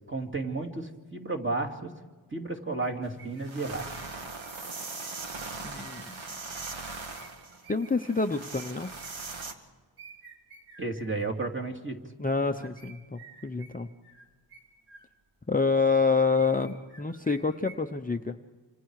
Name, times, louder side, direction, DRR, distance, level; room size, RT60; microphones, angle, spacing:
voice 1, 0.1-1.9 2.3-4.1 10.8-12.0, right 3 dB, 25° right, 1 dB, 2.6 m, -33 dB
sound 1, 2.7-6.2 6.8-9.4 10.0-11.5 12.3-15.4 15.8-17.8, right 4 dB, 55° right, 3.4 m, -54 dB
sound 2, 3.0-3.1 3.4-9.5, right 3 dB, 90° right, 2.1 m, -40 dB
voice 2, 5.6-6.2 7.7-8.9 12.2-13.9 15.5-18.3, left 4 dB, 20° left, 5 dB, 0.7 m, -27 dB
27.5 x 27.5 x 4.8 m, 1.4 s
wide cardioid pair, 130°, 45 cm